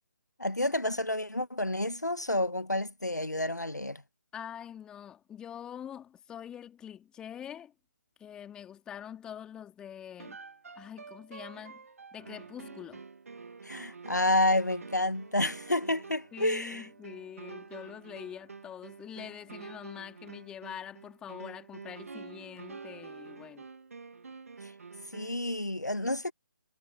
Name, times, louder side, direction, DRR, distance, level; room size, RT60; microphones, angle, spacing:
voice 1, 0.4-4.0 13.6-16.9 24.6-24.7 25.1-26.3, left 1 dB, 90° left, 1.3 m, -29 dB
voice 2, 4.3-7.7 8.2-10.4 10.8-11.8 12.1-13.0 16.3-23.6, left 9 dB, 10° left, 2.7 m, -45 dB
sound 1, 10.2-25.5, right 5 dB, 55° right, 2.1 m, -48 dB
figure-of-eight pair, 145°, 9 cm